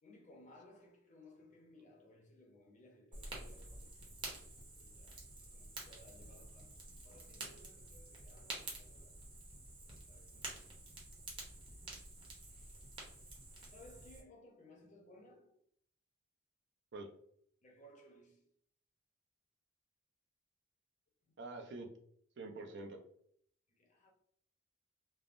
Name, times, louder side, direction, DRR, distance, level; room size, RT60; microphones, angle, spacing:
voice 1, 0.0-4.0 4.5-9.2 9.7-10.6 13.5-15.6 17.6-18.5 21.3-21.4 23.7-24.1, left 1 dB, 40° left, 0.6 m, -61 dB
Fire, 3.1-14.2, right 2 dB, 25° right, 0.8 m, -50 dB
voice 2, 21.4-21.9 22.4-23.0, right 3 dB, 60° right, 0.5 m, -46 dB
3.4 x 2.1 x 2.5 m
head